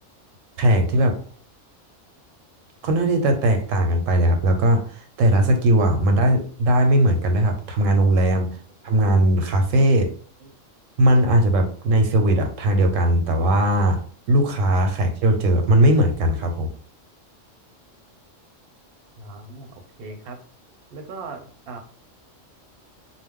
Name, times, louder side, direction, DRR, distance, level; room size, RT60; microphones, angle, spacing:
voice 1, 0.6-1.1 2.8-8.5 8.8-10.1 11.0-14.0 14.3-16.7, right 1 dB, 85° right, 5 dB, 1.0 m, -19 dB
voice 2, 8.5-8.9 10.4-10.5 19.2-20.4 20.9-21.8, right 3 dB, 60° right, 3 dB, 0.7 m, -39 dB
2.3 x 2.0 x 3.5 m, 0.43 s
omnidirectional pair, 1.3 m